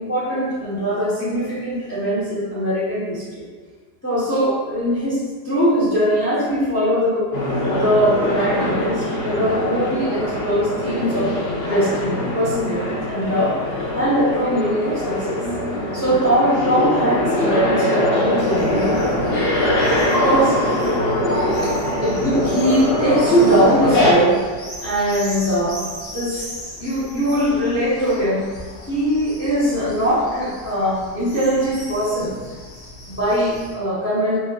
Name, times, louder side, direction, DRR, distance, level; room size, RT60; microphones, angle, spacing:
voice 1, 0.0-3.4 4.0-7.3 7.7-11.3 11.6-13.6 13.9-15.4 15.9-19.5 20.1-20.6 21.6-24.4 24.8-25.8 26.1-26.5 26.8-28.5 28.9-32.3 33.1-34.4, equal, 20° left, -9 dB, 0.4 m, -21 dB
sound 1, 7.3-24.1, left 1 dB, 60° left, 0.6 m, -22 dB
sound 2, 18.4-33.7, left 1 dB, 80° left, 2.1 m, -38 dB
6.1 x 2.3 x 2.3 m, 1.5 s
omnidirectional pair, 1.9 m